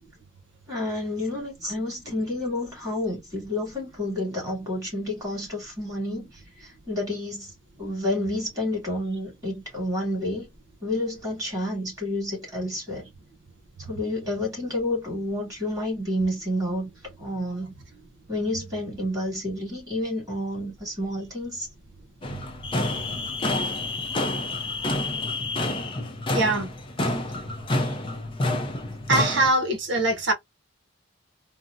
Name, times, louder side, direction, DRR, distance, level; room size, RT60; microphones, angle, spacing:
voice 1, 0.7-6.3 6.6-7.5 7.8-10.5 10.8-13.1 13.9-16.9 17.2-17.7 18.3-21.7, left 1 dB, 15° right, 2.4 m, -29 dB
sound 1, 22.2-29.5, left 2 dB, 25° left, 0.5 m, -28 dB
voice 2, 26.3-26.7 27.8-28.0 29.1-30.3, right 2 dB, 60° right, 0.9 m, -23 dB
3.6 x 2.1 x 2.5 m
head